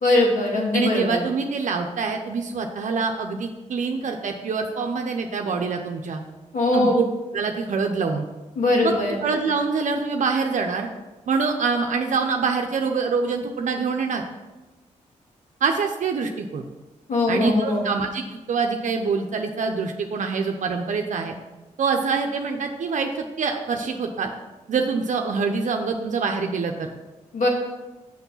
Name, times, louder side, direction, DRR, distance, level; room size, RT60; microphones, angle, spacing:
voice 1, 0.0-1.2 6.5-6.9 8.6-9.1 17.1-17.8 27.3-27.5, left 2 dB, 70° left, -1 dB, 2.2 m, -21 dB
voice 2, 0.7-6.2 6.7-7.0 7.3-8.2 8.8-10.9 11.3-14.2 15.6-16.6 17.3-21.3 21.8-24.3 24.7-26.9, right 5 dB, 65° right, 3 dB, 0.7 m, -25 dB
6.4 x 5.9 x 5.5 m, 1.1 s
cardioid pair, 60°, 14 cm